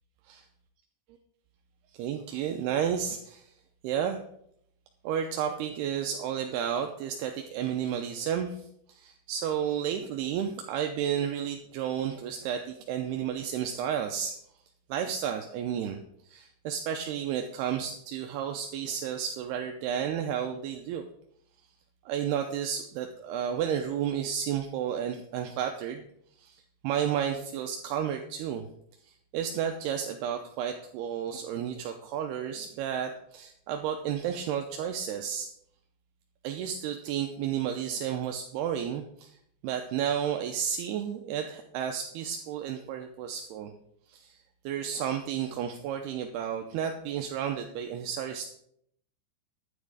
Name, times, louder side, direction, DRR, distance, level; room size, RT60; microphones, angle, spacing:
voice 1, 2.0-3.5 3.8-4.2 5.0-14.4 14.9-16.0 16.2-21.0 22.1-26.0 26.4-28.7 29.0-35.5 36.4-39.4 39.6-43.7 44.1-44.4 44.6-48.5, right 9 dB, 80° right, 4 dB, 2.6 m, -32 dB
10.5 x 9.7 x 4.9 m, 0.70 s
omnidirectional pair, 5.1 m